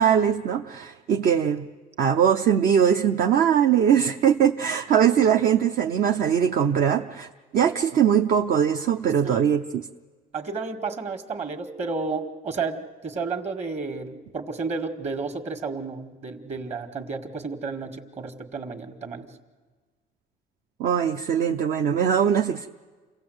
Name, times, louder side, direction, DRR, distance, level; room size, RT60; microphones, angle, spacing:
voice 1, 0.0-1.7 2.0-9.9 20.8-22.7, right 8 dB, 60° right, 4 dB, 0.8 m, -21 dB
voice 2, 10.3-19.3, right 4 dB, 40° right, 6 dB, 1.9 m, -32 dB
28.0 x 17.0 x 7.9 m, 1.4 s
cardioid pair, 110°, 17 cm